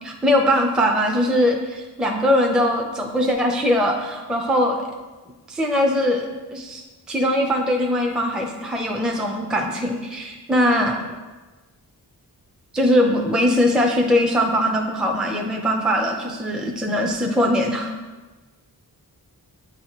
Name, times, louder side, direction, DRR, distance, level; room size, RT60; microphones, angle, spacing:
voice 1, 0.0-4.8 5.5-11.0 12.7-17.9, equal, ahead, 2 dB, 0.5 m, -21 dB
8.4 x 4.1 x 3.0 m, 1.3 s
wide cardioid pair, 60°, 40 cm